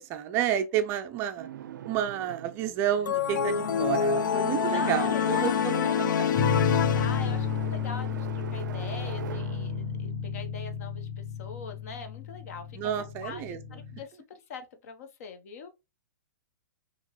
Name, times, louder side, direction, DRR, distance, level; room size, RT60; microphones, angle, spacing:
voice 1, 0.0-1.5 1.8-6.3 12.7-13.6, right 10 dB, 25° right, 0.4 m, -30 dB
sound 1, 1.4-11.3, right 9 dB, 85° right, 0.4 m, -43 dB
sound 2, 3.1-7.7, left 7 dB, 90° left, 0.4 m, -27 dB
voice 2, 4.7-6.0 6.7-15.7, left 5 dB, 55° left, 0.8 m, -42 dB
sound 3, 6.3-14.0, left 6 dB, 20° left, 0.6 m, -32 dB
5.3 x 2.9 x 3.0 m
hypercardioid pair, 155°, 10 cm